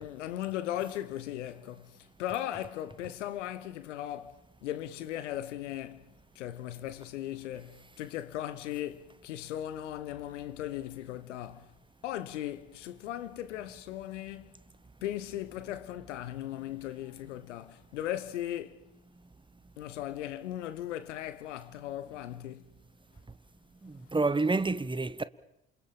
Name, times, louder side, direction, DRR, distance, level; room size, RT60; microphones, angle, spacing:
voice 1, 0.0-6.1 6.3-11.7 12.0-14.5 15.0-18.8 19.8-22.7, left 12 dB, 75° left, 1.3 m, -38 dB
voice 2, 23.8-25.2, right 3 dB, 15° right, 1.3 m, -28 dB
28.0 x 26.0 x 7.3 m
figure-of-eight pair, 45°, 37 cm